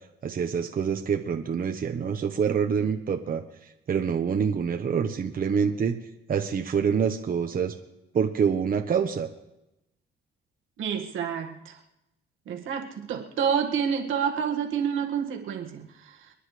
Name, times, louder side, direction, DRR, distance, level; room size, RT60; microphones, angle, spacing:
voice 1, 0.2-6.0 6.3-7.7 8.1-9.3, right 7 dB, 45° right, 4 dB, 1.1 m, -26 dB
voice 2, 10.8-11.8 12.5-16.3, right 7 dB, 80° right, 2 dB, 1.9 m, -29 dB
28.5 x 9.9 x 3.3 m, 0.91 s
cardioid pair, 90°, 20 cm